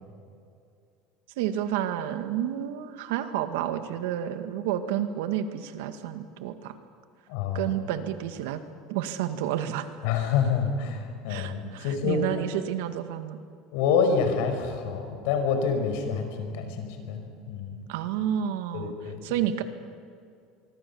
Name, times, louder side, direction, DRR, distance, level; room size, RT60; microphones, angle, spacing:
voice 1, 1.4-6.7 7.5-8.6 8.9-9.9 11.3-13.4 17.9-18.9 19.2-19.6, right 10 dB, 85° right, 9 dB, 1.9 m, -30 dB
voice 2, 7.3-7.7 10.0-12.4 13.7-17.8 18.7-19.2, left 6 dB, 75° left, 6 dB, 5.2 m, -27 dB
24.5 x 24.0 x 7.2 m, 2.4 s
cardioid pair, 140°, 0 cm